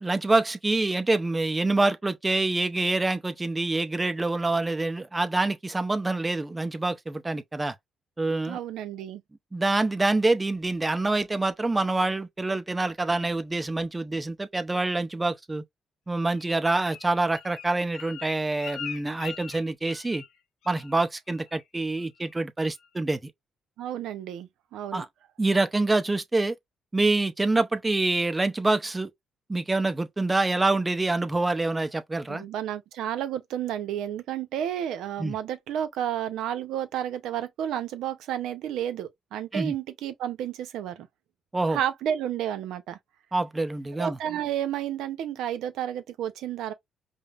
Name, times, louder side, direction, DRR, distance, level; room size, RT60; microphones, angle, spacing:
voice 1, 0.0-7.7 8.2-8.6 9.5-15.6 16.1-20.2 20.7-23.3 24.9-25.1 25.4-26.6 26.9-29.1 29.5-32.4 35.2-35.4 39.5-39.8 41.5-41.8 43.3-44.2, right 2 dB, 20° right, 0.6 m, -26 dB
voice 2, 8.5-9.2 23.8-25.0 32.3-41.1 41.7-43.0 44.0-46.7, right 10 dB, 85° right, 0.6 m, -31 dB
Bird, 16.3-20.4 20.6-21.0 21.3-21.6 22.0-22.4 22.8-22.9, left 8 dB, 85° left, 0.7 m, -42 dB
5.1 x 2.1 x 2.4 m
cardioid pair, 90°, 0 cm